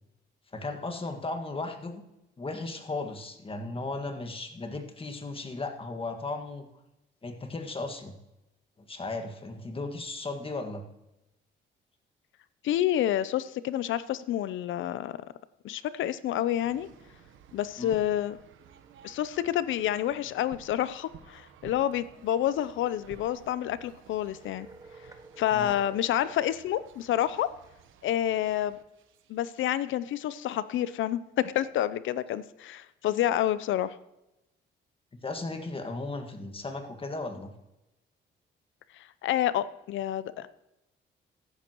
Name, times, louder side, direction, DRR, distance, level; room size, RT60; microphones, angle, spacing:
voice 1, 0.5-2.0 2.4-6.7 7.2-8.1 8.8-10.8 17.8-17.9 25.5-25.7 35.2-37.5, left 3 dB, 25° left, 6 dB, 1.8 m, -36 dB
voice 2, 12.6-15.2 15.6-16.9 17.5-18.4 19.0-24.7 25.4-27.5 28.0-28.8 29.3-34.0 38.9-40.5, left 12 dB, 75° left, 15 dB, 0.6 m, -29 dB
sound 1, 16.6-29.6, right 8 dB, 80° right, 1.1 m, -53 dB
sound 2, 24.3-26.5, right 3 dB, 15° right, 0.8 m, -50 dB
14.5 x 11.5 x 3.0 m, 0.93 s
cardioid pair, 90°, 20 cm